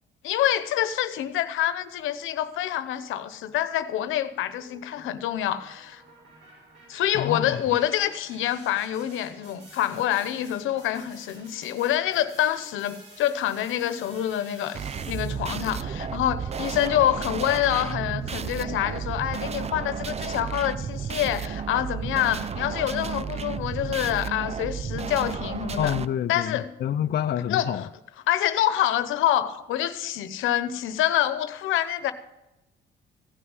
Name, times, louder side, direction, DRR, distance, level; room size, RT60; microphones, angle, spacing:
voice 1, 0.2-6.0 6.9-14.8 15.1-25.9 26.3-26.7 27.5-27.9 28.3-32.1, left 12 dB, 90° left, 1.0 m, -26 dB
sound 1, 4.6-15.7, right 2 dB, 85° right, 6.7 m, -51 dB
voice 2, 7.1-7.6 25.8-27.8, left 10 dB, 55° left, 0.6 m, -27 dB
sound 2, 14.7-26.1, right 7 dB, 30° right, 0.5 m, -32 dB
16.0 x 5.4 x 9.6 m
cardioid pair, 90°, 20 cm